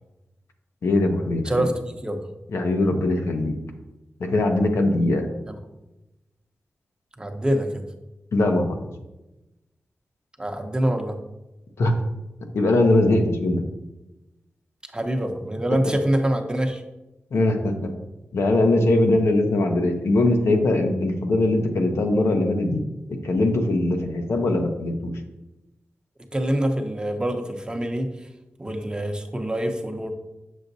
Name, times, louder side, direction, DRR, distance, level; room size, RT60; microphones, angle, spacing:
voice 1, 0.8-1.7 2.5-3.6 4.2-5.3 8.3-8.7 11.8-11.9 12.5-13.6 15.7-15.8 17.3-17.9 18.3-22.8 23.1-25.1, left 2 dB, 85° left, 3 dB, 0.8 m, -21 dB
voice 2, 1.4-2.2 5.5-5.6 7.2-7.8 10.4-11.2 14.9-16.8 26.3-28.1 28.6-30.1, right 1 dB, 20° right, 4 dB, 0.8 m, -25 dB
7.1 x 6.3 x 2.7 m, 0.99 s
wide cardioid pair, 80°, 5 cm